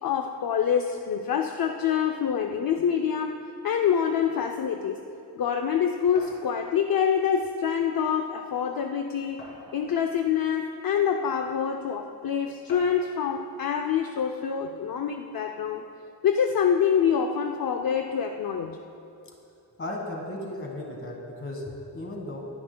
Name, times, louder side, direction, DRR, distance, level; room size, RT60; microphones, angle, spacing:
voice 1, 0.0-3.4 3.6-5.0 5.4-9.4 9.7-15.8 16.2-18.8, left 7 dB, 65° left, 5 dB, 0.5 m, -26 dB
sound 1, 6.2-6.4 7.6-7.7 8.1-8.2 9.4-10.0 10.9-11.0 12.7-13.1, left 1 dB, 85° left, 2.8 m, -45 dB
voice 2, 19.8-22.4, left 1 dB, 35° left, 0 dB, 1.5 m, -35 dB
20.5 x 9.9 x 2.2 m, 2.6 s
wide cardioid pair, 160°, 38 cm